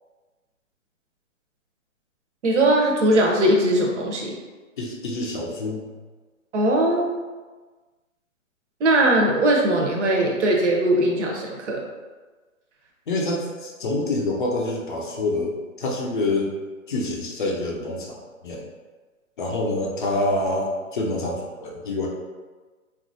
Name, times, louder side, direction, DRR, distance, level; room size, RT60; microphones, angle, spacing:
voice 1, 2.4-4.4 6.5-7.1 8.8-11.8, right 1 dB, 60° right, -1 dB, 0.8 m, -20 dB
voice 2, 4.8-5.8 13.1-16.5 16.9-18.6 19.4-22.1, left 2 dB, 40° left, -1 dB, 0.5 m, -26 dB
2.9 x 2.4 x 2.6 m, 1.3 s
hypercardioid pair, 150°, 41 cm